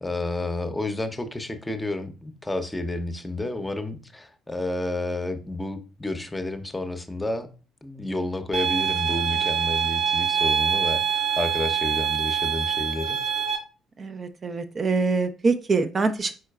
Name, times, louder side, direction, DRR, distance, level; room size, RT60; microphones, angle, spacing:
voice 1, 0.0-7.5 7.8-13.2, left 2 dB, 15° left, 0.7 m, -30 dB
sound 1, 8.5-13.6, right 7 dB, 60° right, 1.1 m, -25 dB
voice 2, 14.0-16.3, right 4 dB, 40° right, 0.4 m, -24 dB
4.5 x 4.4 x 2.3 m
figure-of-eight pair, 50°, 0 cm